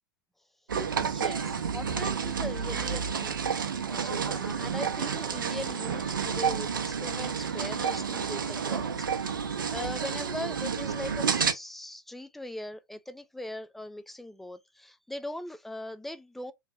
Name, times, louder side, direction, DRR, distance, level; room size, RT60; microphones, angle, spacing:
sound 1, 0.7-11.5, right 6 dB, 80° right, 0.5 m, -30 dB
voice 1, 1.0-3.4 3.9-16.5, left 1 dB, ahead, 0.3 m, -40 dB
3.0 x 2.5 x 2.2 m
figure-of-eight pair, 90°, 11 cm